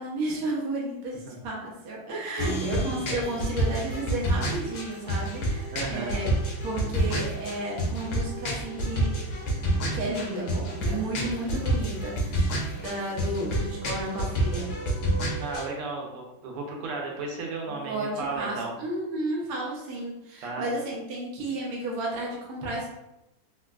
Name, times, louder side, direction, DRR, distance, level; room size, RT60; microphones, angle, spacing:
voice 1, 0.0-6.3 6.6-12.5 12.8-14.7 17.7-22.9, right 1 dB, 60° right, -4 dB, 1.0 m, -33 dB
sound 1, 2.4-15.7, right 1 dB, 75° left, 1.2 m, -29 dB
voice 2, 5.7-6.2 15.4-18.7 20.4-20.7, right 3 dB, 90° right, 0 dB, 1.6 m, -34 dB
3.7 x 2.2 x 2.3 m, 0.91 s
omnidirectional pair, 2.4 m